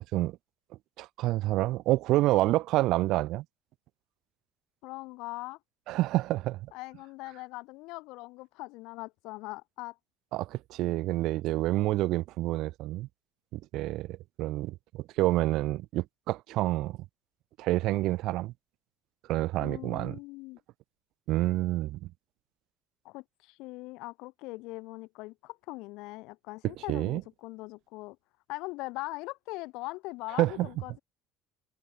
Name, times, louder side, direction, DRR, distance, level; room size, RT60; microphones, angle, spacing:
voice 1, 1.0-3.4 5.9-6.7 10.3-13.1 13.5-17.0 17.6-18.5 19.3-20.2 21.3-22.0 26.9-27.2 30.4-30.7, right 17 dB, 70° right, 0.3 m, -28 dB
voice 2, 4.8-5.6 6.7-10.0 19.6-20.6 23.0-28.2 28.5-31.0, left 23 dB, 75° left, 2.9 m, -41 dB
supercardioid pair, 90°, 0 cm